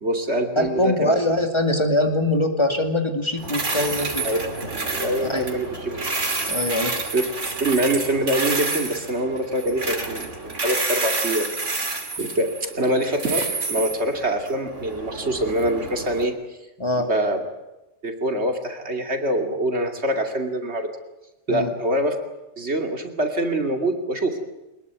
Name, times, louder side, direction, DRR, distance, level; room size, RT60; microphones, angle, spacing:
voice 1, 0.0-1.2 4.2-4.4 4.9-5.7 7.1-7.2 7.6-11.5 12.1-16.3 17.0-17.4 18.0-20.9 21.5-22.2 22.6-24.4, right 1 dB, 65° right, 4 dB, 2.9 m, -24 dB
voice 2, 0.6-4.3 5.3-5.5 6.5-7.0 12.2-12.3 16.8-17.1 21.5-21.7, left 1 dB, 25° left, 4 dB, 2.6 m, -23 dB
sound 1, 3.4-16.3, right 3 dB, 80° right, 3.1 m, -29 dB
23.0 x 21.0 x 9.4 m, 0.98 s
omnidirectional pair, 1.2 m